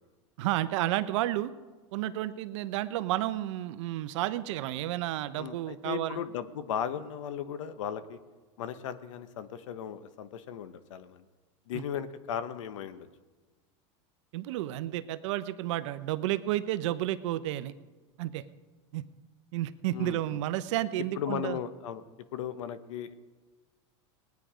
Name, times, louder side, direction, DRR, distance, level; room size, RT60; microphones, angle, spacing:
voice 1, 0.4-1.5 1.9-6.2 11.7-11.8 14.3-17.7 18.2-18.4 18.9-19.0 19.5-21.6, right 14 dB, 70° right, 13 dB, 0.7 m, -31 dB
voice 2, 5.4-8.2 8.6-11.2 11.7-13.1 19.9-20.4 21.1-22.0 22.3-23.1, left 9 dB, 85° left, 13 dB, 1.0 m, -36 dB
19.0 x 9.4 x 5.0 m, 1.3 s
supercardioid pair, 125°, 16 cm